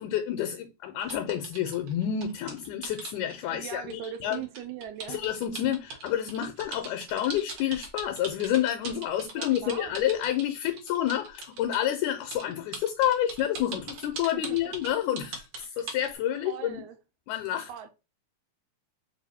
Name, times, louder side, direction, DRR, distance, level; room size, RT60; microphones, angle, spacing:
voice 1, 0.0-4.4 5.1-16.8 17.3-17.7, left 11 dB, 80° left, 2.0 m, -29 dB
sound 1, 1.0-11.9 12.3-16.1, right 4 dB, 60° right, 1.7 m, -40 dB
voice 2, 3.5-5.4 9.3-9.9 14.3-14.7 16.5-17.0 17.7-17.9, right 10 dB, 80° right, 1.9 m, -40 dB
4.6 x 2.6 x 4.1 m
omnidirectional pair, 3.5 m